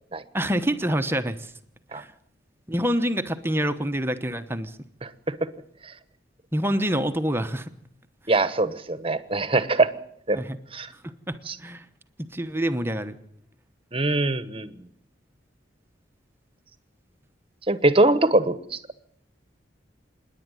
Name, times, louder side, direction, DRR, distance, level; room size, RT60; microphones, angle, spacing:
voice 1, 0.3-1.5 1.9-2.1 2.7-4.8 6.5-7.7 10.3-10.6 11.0-11.1 11.6-11.8 12.2-13.2, equal, 15° right, 8 dB, 1.0 m, -26 dB
voice 2, 5.0-5.3 5.8-5.9 8.3-9.9 10.3-10.4 10.7-10.9 11.5-11.6 13.9-14.7 17.7-18.8, right 2 dB, 30° right, 13 dB, 1.2 m, -22 dB
27.0 x 11.0 x 9.2 m, 0.68 s
head